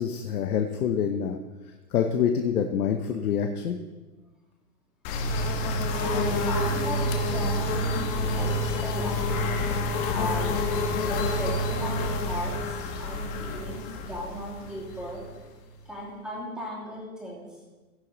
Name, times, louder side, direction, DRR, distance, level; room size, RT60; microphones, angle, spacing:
voice 1, 0.0-1.4 1.9-3.8, left 8 dB, 65° left, 5 dB, 1.0 m, -26 dB
sound 1, 5.0-15.7, left 1 dB, 35° left, 1.3 m, -28 dB
voice 2, 5.9-9.2 9.9-10.6 10.9-15.2 15.8-17.5, equal, ahead, -5 dB, 2.8 m, -37 dB
16.0 x 6.8 x 4.0 m, 1.2 s
hypercardioid pair, 135°, 47 cm